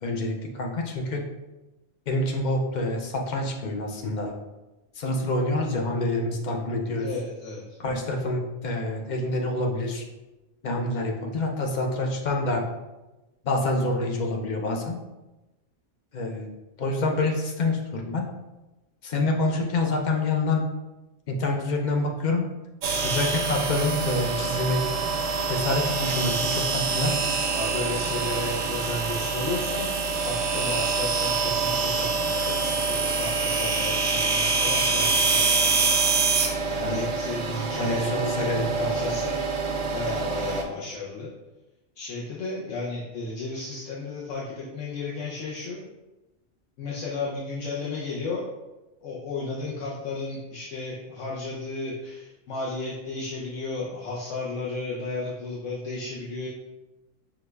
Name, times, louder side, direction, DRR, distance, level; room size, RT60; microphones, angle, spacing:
voice 1, 0.0-1.2 2.1-4.3 4.9-7.1 7.8-10.0 10.6-12.6 13.4-15.0 16.1-16.5 16.8-18.2 19.0-20.6 21.3-22.5 23.0-24.8 25.5-27.2 36.8-37.0 37.8-39.1, left 2 dB, 50° left, 1 dB, 0.6 m, -27 dB
voice 2, 7.0-7.6 27.5-35.9 36.6-39.4 39.8-41.3 42.0-45.9 46.8-48.4 49.0-56.5, left 2 dB, 80° left, -5 dB, 1.1 m, -33 dB
sound 1, 22.8-40.6, right 4 dB, 85° right, 1.0 m, -26 dB
5.9 x 2.3 x 3.2 m, 1.0 s
omnidirectional pair, 1.3 m